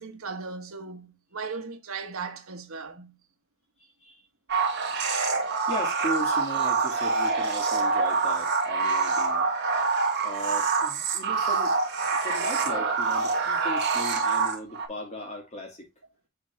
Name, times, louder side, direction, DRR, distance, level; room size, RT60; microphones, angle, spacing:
voice 1, 0.0-3.2, right 4 dB, 90° right, 1.4 m, -37 dB
sound 1, 4.5-14.9, right 4 dB, 55° right, 1.7 m, -26 dB
voice 2, 5.7-9.5 9.7-9.9 10.2-11.7 12.1-15.9, equal, 35° left, 2.6 m, -37 dB
6.5 x 4.4 x 3.7 m
head